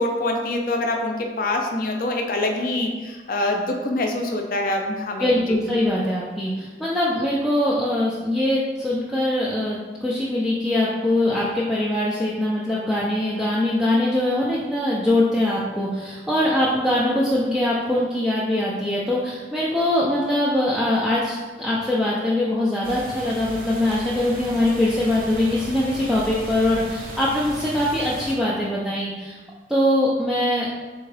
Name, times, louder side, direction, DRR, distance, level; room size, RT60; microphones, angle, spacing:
voice 1, 0.0-5.3, left 2 dB, 50° left, 2 dB, 0.5 m, -25 dB
voice 2, 5.2-29.4 29.7-30.7, left 1 dB, ahead, -8 dB, 0.4 m, -22 dB
sound 1, 22.8-28.3, right 1 dB, 50° right, 0.6 m, -36 dB
3.6 x 3.5 x 3.3 m, 1.3 s
head